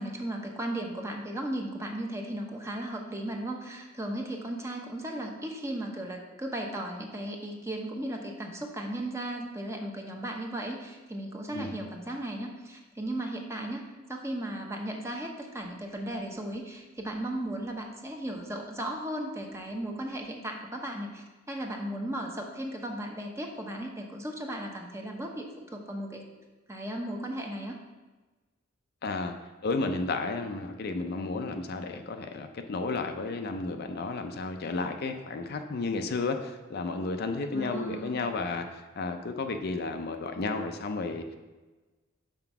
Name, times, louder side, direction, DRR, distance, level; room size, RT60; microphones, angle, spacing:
voice 1, 0.0-26.2 26.7-27.8 37.5-38.2, right 1 dB, 15° right, 2 dB, 0.8 m, -36 dB
voice 2, 29.0-29.4 29.6-41.3, left 3 dB, 55° left, 6 dB, 0.5 m, -32 dB
5.8 x 4.4 x 5.9 m, 1.2 s
head